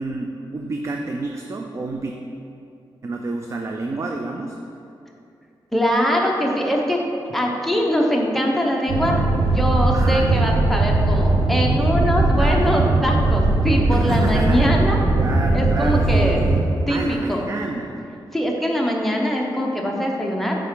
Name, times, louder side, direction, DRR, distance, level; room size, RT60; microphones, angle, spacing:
voice 1, 0.0-2.2 3.0-4.6 9.9-10.5 12.2-12.7 13.9-14.8 15.2-18.0, right 3 dB, 35° right, 2 dB, 0.3 m, -29 dB
voice 2, 5.7-7.0 7.3-15.0 15.5-16.4 16.9-17.5 18.3-20.6, equal, ahead, -1 dB, 0.7 m, -22 dB
sound 1, 8.9-16.6, right 2 dB, 85° right, 0.7 m, -19 dB
9.1 x 3.5 x 3.6 m, 2.6 s
wide cardioid pair, 145°, 9 cm